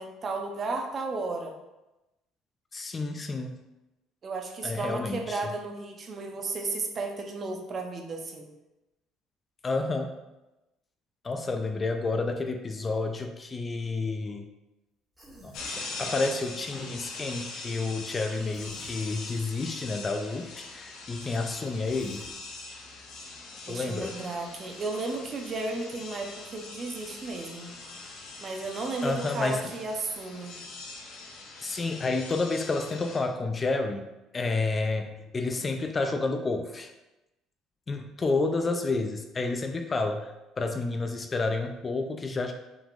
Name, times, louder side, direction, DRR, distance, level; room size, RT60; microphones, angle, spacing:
voice 1, 0.0-1.5 4.2-8.5 23.7-27.7 28.4-30.6, right 3 dB, 40° right, 3 dB, 0.8 m, -34 dB
voice 2, 2.7-3.6 4.6-5.4 9.6-10.1 11.2-14.5 15.4-22.2 23.7-24.2 29.0-29.6 31.6-34.1 34.3-36.9 37.9-42.5, left 3 dB, 25° left, 6 dB, 0.4 m, -30 dB
Human voice, 15.1-15.7 18.5-19.0 21.9-22.3, right 1 dB, 10° right, 1.4 m, -50 dB
sound 1, 15.5-33.2, left 3 dB, 70° left, 1.0 m, -42 dB
5.9 x 3.6 x 2.5 m, 0.98 s
cardioid pair, 105°, 0 cm